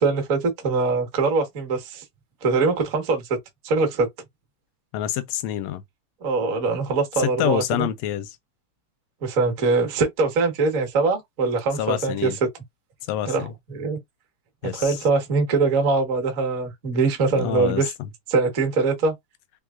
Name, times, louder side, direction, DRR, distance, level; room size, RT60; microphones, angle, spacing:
voice 1, 0.0-2.0 2.4-3.3 3.6-4.1 6.2-7.9 9.2-12.3 13.2-14.0 14.6-17.9 18.3-19.1, right 4 dB, 40° right, 1.2 m, -22 dB
voice 2, 4.9-5.8 7.2-8.4 11.8-12.4 13.1-13.5 14.6-15.0 17.3-17.8, left 11 dB, 80° left, 1.6 m, -27 dB
4.7 x 3.4 x 2.4 m
omnidirectional pair, 3.4 m